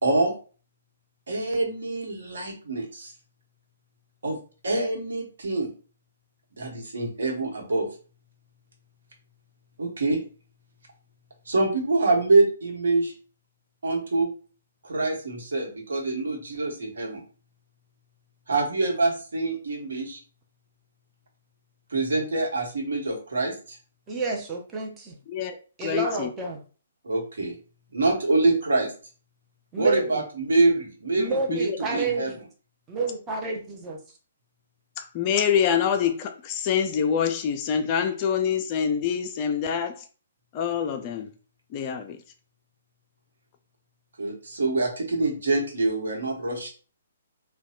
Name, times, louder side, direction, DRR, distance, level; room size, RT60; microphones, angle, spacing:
voice 1, 0.0-0.3 1.3-3.1 4.2-4.4 4.6-5.7 6.6-7.9 9.8-10.2 11.5-13.1 13.8-14.3 14.8-17.2 18.5-20.2 21.9-23.8 27.0-27.6 27.9-28.9 29.8-32.3 44.2-46.7, right 2 dB, 60° right, 1.1 m, -25 dB
voice 2, 24.1-25.2 25.8-26.6 29.7-30.2 31.2-32.4 32.9-34.0, right 3 dB, 15° right, 0.7 m, -29 dB
voice 3, 25.8-26.3 31.5-31.8 35.0-40.1 40.5-41.3 41.7-42.2, left 8 dB, 30° left, 0.3 m, -26 dB
4.1 x 2.2 x 2.4 m
figure-of-eight pair, 125°, 0 cm